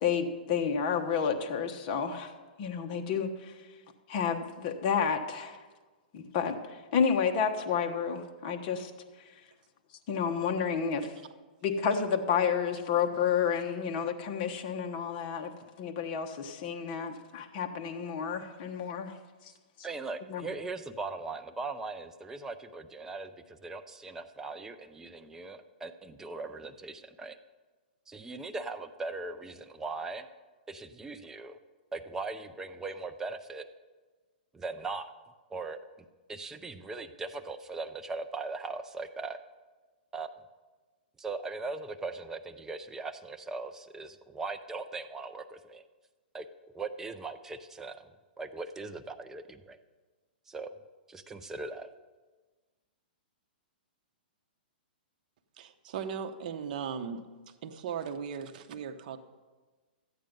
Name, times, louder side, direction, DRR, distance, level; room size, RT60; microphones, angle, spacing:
voice 1, 0.0-2.3 2.6-3.5 4.1-5.6 6.1-8.9 10.1-11.1 11.6-15.5 15.8-19.2 20.3-20.5, left 7 dB, 40° left, 4 dB, 1.1 m, -30 dB
voice 2, 19.8-27.4 28.1-30.3 30.7-31.6 31.9-33.7 34.5-35.1 35.5-35.8 36.3-39.4 40.1-40.3 41.2-45.9 46.3-46.5 46.7-49.8 50.5-50.7 51.1-51.9, right 3 dB, 10° right, 7 dB, 0.5 m, -39 dB
voice 3, 55.6-57.3 57.6-59.2, right 7 dB, 55° right, 8 dB, 1.0 m, -37 dB
13.5 x 8.7 x 5.3 m, 1.3 s
hypercardioid pair, 145°, 5 cm